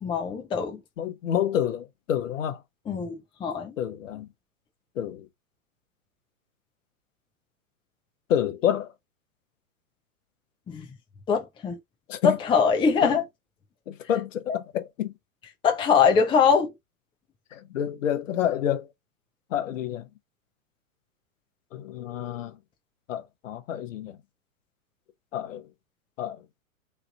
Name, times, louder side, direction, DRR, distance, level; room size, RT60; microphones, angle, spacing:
voice 1, 0.0-0.8 2.9-3.7 10.7-10.9 11.3-11.8 12.2-13.2 14.5-14.6 15.6-16.7, left 6 dB, 10° left, 0.6 m, -22 dB
voice 2, 1.0-2.6 3.8-4.3 5.0-5.3 8.3-8.9 12.1-12.4 13.0-13.1 13.9-15.1 17.5-18.9 19.5-20.1 21.7-22.6 23.1-24.2 25.3-25.7 26.2-26.4, left 10 dB, 65° left, 0.9 m, -28 dB
3.2 x 2.5 x 3.6 m
hypercardioid pair, 110°, 42 cm